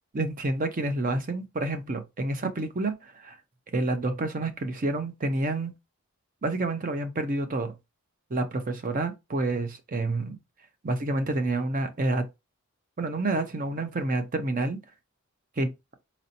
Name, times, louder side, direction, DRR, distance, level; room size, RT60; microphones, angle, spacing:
voice 1, 0.1-3.4 3.7-5.7 6.4-7.8 8.3-10.4 10.8-12.2 13.0-14.8 15.6-15.7, right 2 dB, 35° right, 0.6 m, -28 dB
4.2 x 2.7 x 2.7 m
head